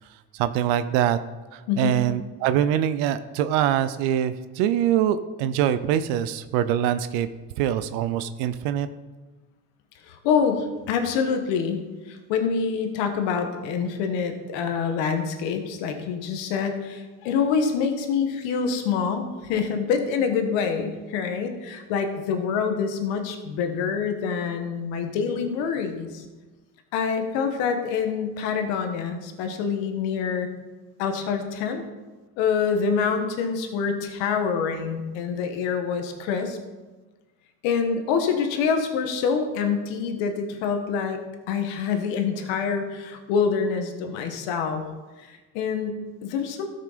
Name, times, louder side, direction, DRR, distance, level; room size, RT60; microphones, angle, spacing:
voice 1, 0.3-1.2 1.5-7.3 7.6-8.9, right 10 dB, 80° right, 12 dB, 0.7 m, -24 dB
voice 2, 1.7-2.0 10.0-26.2 26.9-30.5 31.0-31.8 32.4-36.6 37.6-41.2 41.5-44.8 45.2-46.7, left 6 dB, 80° left, 6 dB, 1.5 m, -26 dB
13.5 x 6.6 x 5.1 m, 1.3 s
supercardioid pair, 80°, 43 cm